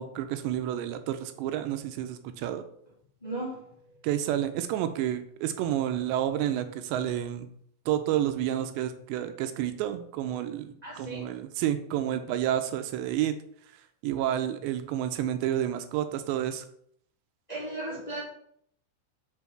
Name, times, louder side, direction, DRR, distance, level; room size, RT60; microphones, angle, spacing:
voice 1, 0.0-2.6 4.0-7.5 7.9-13.4 14.0-16.7, right 11 dB, 85° right, 9 dB, 2.7 m, -30 dB
voice 2, 3.2-3.7 10.8-11.4 17.5-18.2, right 2 dB, 15° left, -6 dB, 1.4 m, -36 dB
6.1 x 5.6 x 6.0 m, 0.67 s
omnidirectional pair, 5.2 m